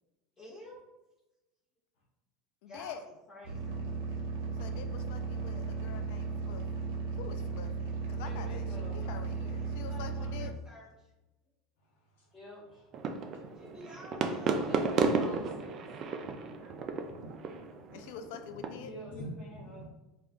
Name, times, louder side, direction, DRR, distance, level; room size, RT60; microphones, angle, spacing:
voice 1, 0.4-0.8 2.7-3.8 9.0-11.1 13.5-14.6, left 1 dB, 35° left, -8 dB, 0.8 m, -51 dB
voice 2, 2.6-3.0 4.6-10.5 16.0-16.1 17.9-18.9, left 7 dB, 70° left, 8 dB, 0.3 m, -46 dB
sound 1, 3.4-10.5, right 4 dB, 70° right, 0.7 m, -36 dB
voice 3, 8.3-9.0 12.3-12.9 14.6-15.8 18.8-19.8, equal, 5° left, -7 dB, 1.1 m, -47 dB
voice 4, 11.8-12.4 13.3-13.7 14.9-15.4 16.5-16.8 17.1-17.6 18.5-18.7 19.1-19.9, equal, 85° left, -6 dB, 0.7 m, -47 dB
sound 2, 12.9-18.7, right 4 dB, 40° right, 0.3 m, -33 dB
2.3 x 2.2 x 3.5 m, 1.0 s
supercardioid pair, 135°, 0 cm